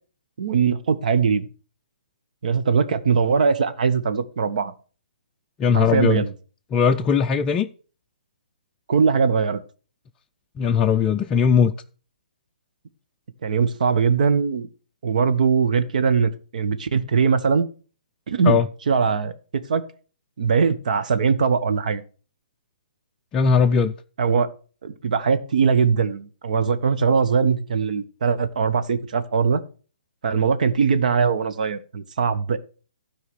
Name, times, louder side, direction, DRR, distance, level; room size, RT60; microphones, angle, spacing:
voice 1, 0.4-1.5 2.4-4.7 5.7-6.3 8.9-9.6 13.4-14.7 15.0-17.7 18.3-18.6 18.9-19.3 19.7-19.8 20.4-22.0 24.2-24.5 24.8-29.6 30.2-32.6, right 5 dB, 60° right, 1.3 m, -21 dB
voice 2, 5.6-6.2 6.7-7.7 10.6-11.7 18.4-18.7 23.3-23.9, left 6 dB, 20° left, 0.4 m, -19 dB
12.5 x 4.9 x 7.0 m
figure-of-eight pair, 135°, 5 cm